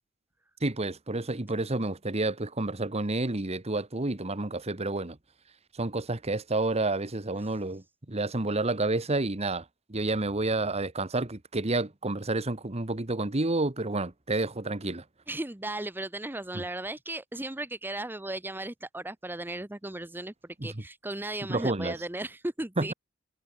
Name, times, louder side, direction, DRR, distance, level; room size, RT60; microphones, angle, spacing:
voice 1, 0.6-5.2 5.7-15.0 16.5-16.6 20.6-20.8 21.5-21.9 22.8-22.9, right 2 dB, 30° right, 1.4 m, -30 dB
voice 2, 15.3-22.9, right 1 dB, 10° right, 0.8 m, -36 dB
head